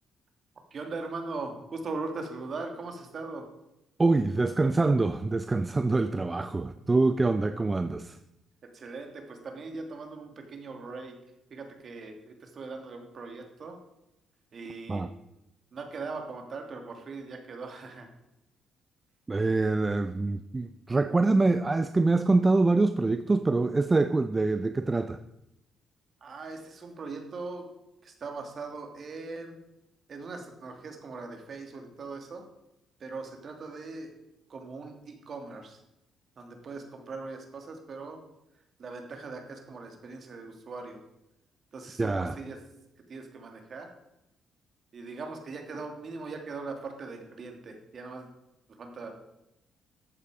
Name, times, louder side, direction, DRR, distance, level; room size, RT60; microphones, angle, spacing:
voice 1, 0.7-3.5 8.6-11.2 11.5-13.8 14.5-15.0 15.7-18.1 26.2-27.7 28.0-29.6 30.1-32.4 33.0-34.1 34.5-35.8 36.4-38.2 38.8-41.0 41.7-42.6 43.1-43.9 44.9-48.3 48.7-49.1, right 3 dB, 50° right, 4 dB, 2.6 m, -40 dB
voice 2, 4.0-8.2 14.9-15.1 19.3-25.2 42.0-42.4, right 3 dB, 25° right, 10 dB, 0.5 m, -25 dB
13.5 x 8.4 x 5.0 m, 0.87 s
cardioid pair, 90°, 0 cm